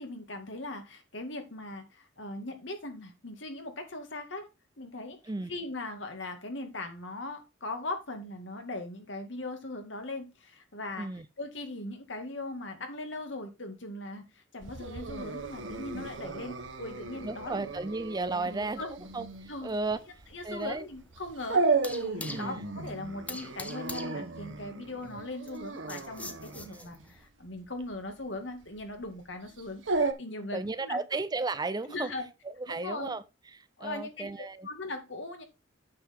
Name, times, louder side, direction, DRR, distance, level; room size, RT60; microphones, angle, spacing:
voice 1, 0.0-4.5 4.8-5.2 5.5-11.1 11.4-17.7 18.8-18.9 19.5-19.7 20.3-21.6 21.9-31.0 31.9-32.3 32.7-33.2 33.8-34.3 34.6-35.4, left 2 dB, 70° left, 2.1 m, -39 dB
Dog, 14.6-30.1, right 3 dB, 80° right, 1.2 m, -35 dB
voice 2, 17.2-18.8 19.1-20.0 20.4-20.9 22.3-22.6 26.8-26.9 30.4-32.1 32.4-33.2 33.5-34.7, right 3 dB, 20° right, 0.5 m, -34 dB
sound 1, 19.3-27.2, left 2 dB, 10° left, 0.9 m, -46 dB
8.8 x 6.5 x 3.6 m
head